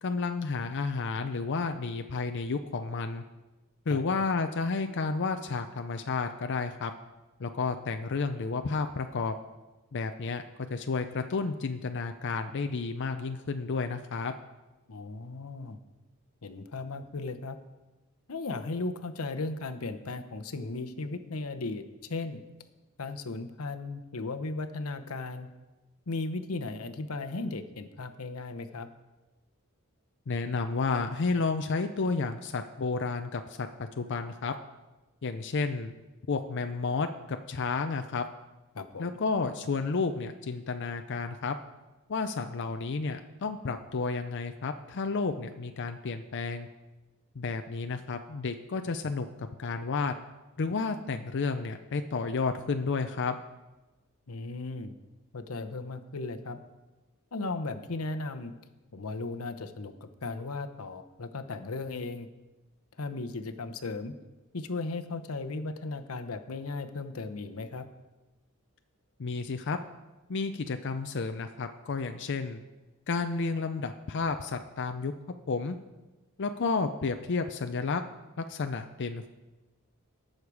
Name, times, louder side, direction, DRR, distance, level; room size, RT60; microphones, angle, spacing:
voice 1, 0.0-3.2 3.9-6.9 7.4-9.3 9.9-10.4 10.7-14.3 30.3-34.5 35.2-35.9 36.3-38.2 39.0-41.6 42.1-46.7 47.4-49.3 49.6-50.1 50.6-53.4 69.2-69.8 70.3-72.6 73.1-75.1 75.5-75.8 76.4-78.0 78.4-79.3, left 4 dB, 55° left, 7 dB, 0.5 m, -31 dB
voice 2, 14.9-15.8 16.4-17.6 18.3-21.8 22.1-22.4 23.0-25.5 26.1-28.9 38.7-39.1 54.3-55.0 55.3-56.6 57.3-58.5 58.9-62.3 63.0-64.1 64.5-67.8, left 3 dB, 90° left, 8 dB, 0.9 m, -36 dB
18.0 x 6.6 x 4.8 m, 1.1 s
head